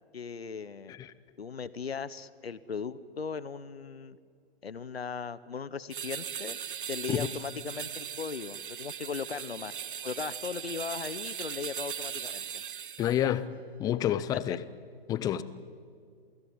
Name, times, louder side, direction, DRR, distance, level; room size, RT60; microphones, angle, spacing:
voice 1, 0.1-0.9 1.4-4.2 4.6-6.6 6.9-9.7 10.0-12.6 14.5-14.6, left 5 dB, 75° left, 1.1 m, -38 dB
sound 1, 5.9-13.2, right 8 dB, 55° right, 1.4 m, -39 dB
voice 2, 13.0-13.5 13.8-14.6 15.1-15.4, left 11 dB, 10° left, 0.7 m, -28 dB
28.5 x 18.5 x 9.6 m
figure-of-eight pair, 125°, 31 cm